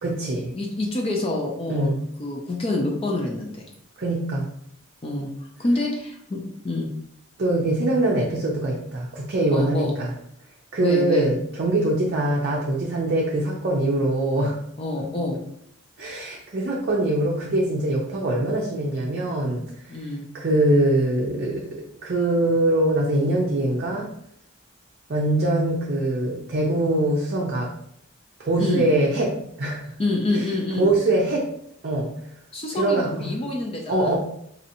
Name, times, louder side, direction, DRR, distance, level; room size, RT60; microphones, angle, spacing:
voice 1, 0.0-0.5 1.7-2.0 4.0-4.5 7.4-10.1 10.7-14.6 16.0-20.0 20.3-21.7 22.0-24.1 25.1-27.7 28.4-29.9 30.3-30.5 30.8-31.5 31.8-32.1 32.7-33.3 33.9-34.2, right 1 dB, 45° right, -2 dB, 0.5 m, -23 dB
voice 2, 0.5-3.7 5.0-5.3 5.6-6.9 9.5-9.9 10.8-11.3 14.8-15.4 19.9-20.3 28.6-28.9 30.0-30.9 32.5-34.1, left 2 dB, 25° left, 0 dB, 0.4 m, -27 dB
4.1 x 2.7 x 2.6 m, 0.71 s
head